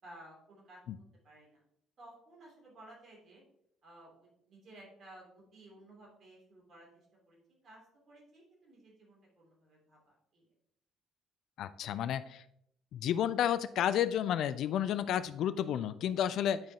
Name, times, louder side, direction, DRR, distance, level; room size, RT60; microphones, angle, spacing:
voice 1, 0.0-0.8 1.2-1.6 2.0-3.4 3.8-7.4 7.6-7.8 8.1-10.4 16.2-16.5, right 1 dB, 45° right, -3 dB, 2.8 m, -56 dB
voice 2, 11.6-12.4 12.9-16.6, left 10 dB, 55° left, 14 dB, 0.3 m, -31 dB
9.3 x 4.7 x 2.8 m, 0.74 s
figure-of-eight pair, 50°, 0 cm